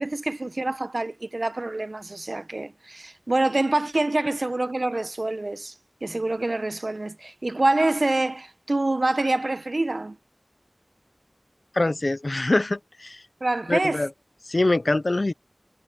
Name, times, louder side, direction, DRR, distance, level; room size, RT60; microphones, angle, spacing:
voice 1, 0.0-5.7 6.0-10.2 13.4-14.0, right 2 dB, 65° right, 0.9 m, -26 dB
voice 2, 11.7-13.2 13.7-14.1 14.5-15.3, left 2 dB, 60° left, 0.7 m, -24 dB
wide cardioid pair, 50°, 0 cm